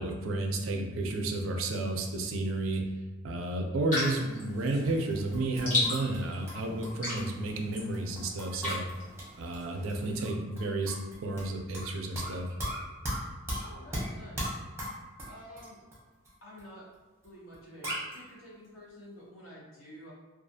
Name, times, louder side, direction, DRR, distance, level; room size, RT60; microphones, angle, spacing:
voice 1, 0.0-2.9 3.2-8.8 9.4-12.5, right 2 dB, 80° right, 3 dB, 0.4 m, -32 dB
sound 1, 3.9-10.2, left 2 dB, 40° left, 0.9 m, -36 dB
sound 2, 4.9-6.2 6.5-9.6 9.9-10.0 10.2-11.9 12.2-16.0 16.2-16.3 16.6-16.7 17.2-17.3 17.5-17.6 17.8-18.2, equal, 10° right, 0.6 m, -37 dB
voice 2, 13.6-14.4 15.3-15.8 16.4-16.8 17.2-20.1, equal, 80° left, -5 dB, 0.8 m, -49 dB
2.4 x 2.3 x 2.6 m, 1.2 s
head